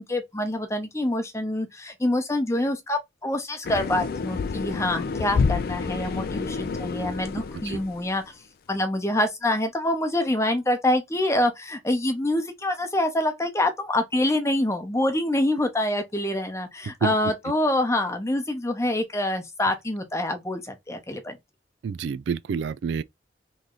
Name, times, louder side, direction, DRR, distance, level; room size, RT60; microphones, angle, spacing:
voice 1, 0.0-8.2 8.7-21.4, left 1 dB, 15° left, 0.7 m, -26 dB
sound 1, 3.6-8.3, left 5 dB, 55° left, 0.3 m, -29 dB
voice 2, 21.8-23.0, right 6 dB, 80° right, 0.3 m, -28 dB
3.1 x 2.7 x 3.7 m
head